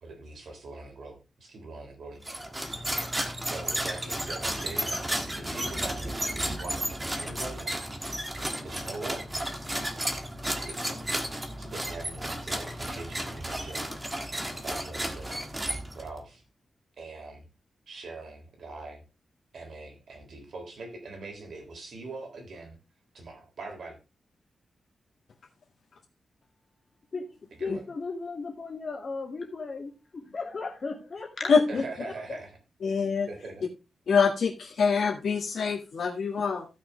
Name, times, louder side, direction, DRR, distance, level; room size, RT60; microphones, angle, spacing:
voice 1, 0.0-2.5 3.4-7.9 8.3-9.2 10.6-10.9 11.6-13.9 14.3-15.3 15.9-16.4 17.0-17.4 17.9-19.0 19.5-22.8 23.1-24.0 27.6-27.8 31.7-32.5 33.3-33.6, right 3 dB, 65° right, 4 dB, 3.4 m, -42 dB
sound 1, 2.2-16.2, right 1 dB, 15° right, 1.5 m, -33 dB
voice 2, 27.6-32.4, left 4 dB, 40° left, 1 dB, 2.4 m, -36 dB
voice 3, 31.5-31.8 32.8-33.3 34.1-36.7, left 5 dB, 70° left, -3 dB, 2.0 m, -25 dB
16.0 x 6.2 x 3.4 m, 0.29 s
wide cardioid pair, 155°, 0 cm